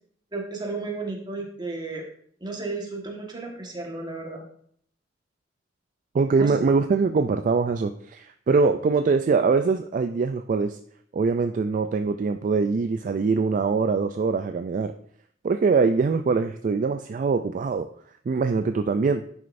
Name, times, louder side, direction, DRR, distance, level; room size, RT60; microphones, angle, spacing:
voice 1, 0.3-2.0 2.4-4.4 6.4-6.5, right 3 dB, 25° right, 0 dB, 1.5 m, -33 dB
voice 2, 6.1-10.8 11.1-14.9 15.4-17.9 18.3-19.2, right 4 dB, 45° right, 8 dB, 0.3 m, -23 dB
11.0 x 6.3 x 2.6 m, 0.62 s
head